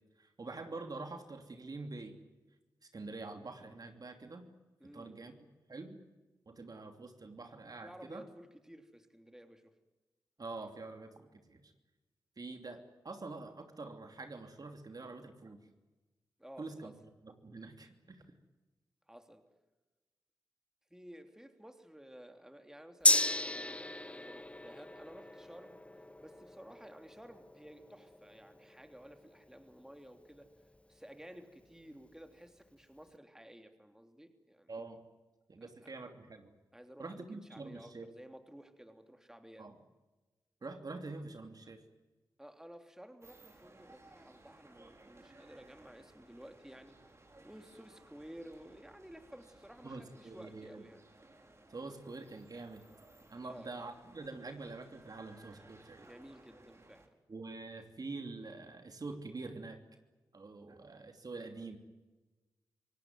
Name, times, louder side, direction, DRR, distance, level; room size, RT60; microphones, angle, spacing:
voice 1, 0.2-2.2 2.9-4.5 4.9-5.3 5.7-6.0 6.5-8.2 10.4-11.6 12.4-15.6 16.6-16.9 17.2-18.3 34.7-35.0 35.5-36.5 37.0-38.1 39.6-39.8 40.6-41.8 49.8-50.8 51.7-52.8 53.3-56.1 57.3-59.8 60.3-61.8, right 3 dB, 50° right, 5 dB, 2.9 m, -46 dB
voice 2, 4.8-5.3 7.8-9.7 16.4-16.9 19.1-19.4 20.9-25.8 26.2-30.5 30.9-34.7 35.8-35.9 36.7-39.7 42.4-47.0 47.4-51.0 53.4-53.7 56.0-57.1, equal, 5° right, 6 dB, 3.2 m, -54 dB
Gong, 23.0-30.8 31.1-31.2, left 1 dB, 15° left, 0.9 m, -35 dB
sound 1, 43.2-57.1, right 2 dB, 35° right, 4.5 m, -60 dB
26.0 x 18.0 x 9.5 m, 1.2 s
supercardioid pair, 40°, 8 cm